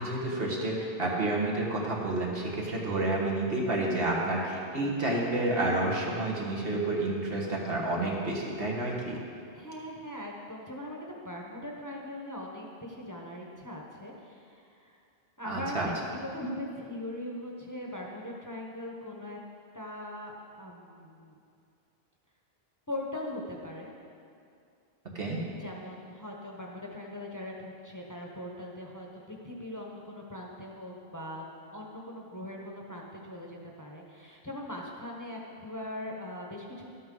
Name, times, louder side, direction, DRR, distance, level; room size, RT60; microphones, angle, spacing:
voice 1, 0.0-9.2 15.4-15.9 25.1-25.4, right 2 dB, 65° right, -2 dB, 1.7 m, -30 dB
voice 2, 9.5-15.0 15.4-19.4 19.7-21.4 22.9-23.9 25.6-36.9, left 1 dB, 20° left, -1 dB, 0.9 m, -40 dB
12.5 x 8.5 x 3.8 m, 2.4 s
omnidirectional pair, 1.0 m